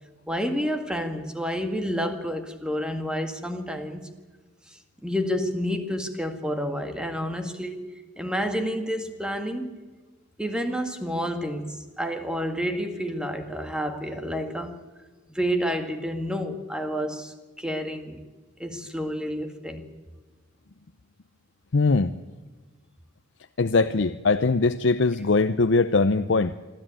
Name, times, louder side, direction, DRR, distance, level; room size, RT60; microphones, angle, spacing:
voice 1, 0.3-4.1 5.0-7.9 8.2-9.8 10.4-14.7 15.3-18.2 18.6-19.8, equal, 5° right, 6 dB, 1.9 m, -29 dB
voice 2, 21.7-22.1 23.6-26.5, left 3 dB, 70° left, 9 dB, 0.6 m, -21 dB
25.0 x 14.0 x 9.0 m, 1.3 s
head